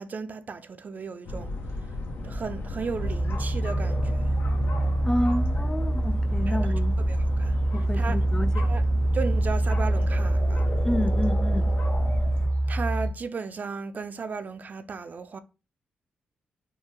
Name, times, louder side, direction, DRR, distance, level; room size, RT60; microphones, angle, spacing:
voice 1, 0.0-1.5 2.2-4.3 6.5-6.7 7.1-7.6 7.9-8.2 8.6-8.8 9.1-10.7 12.7-15.4, right 5 dB, 50° right, 0.4 m, -35 dB
sound 1, 1.3-12.5, left 1 dB, 75° left, 0.7 m, -34 dB
sound 2, 3.0-13.1, right 1 dB, 50° left, 1.2 m, -25 dB
voice 2, 5.0-7.0 7.7-8.7 10.8-11.8, left 1 dB, 15° left, 0.4 m, -29 dB
3.6 x 2.3 x 2.9 m
supercardioid pair, 45°, 4 cm